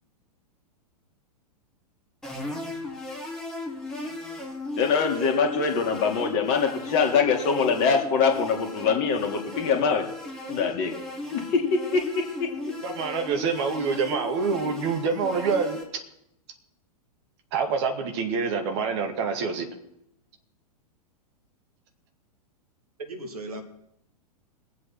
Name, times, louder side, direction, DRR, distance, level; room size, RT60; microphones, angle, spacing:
sound 1, 2.2-15.8, left 1 dB, 5° left, 2.5 m, -36 dB
voice 1, 4.8-10.1 10.5-10.9 11.3-12.5, left 5 dB, 35° left, 2.3 m, -24 dB
voice 2, 12.8-15.8 17.5-19.7, right 5 dB, 45° right, 2.1 m, -26 dB
voice 3, 23.0-23.6, right 2 dB, 65° right, 2.1 m, -36 dB
22.0 x 7.9 x 4.4 m
figure-of-eight pair, 100°, 20 cm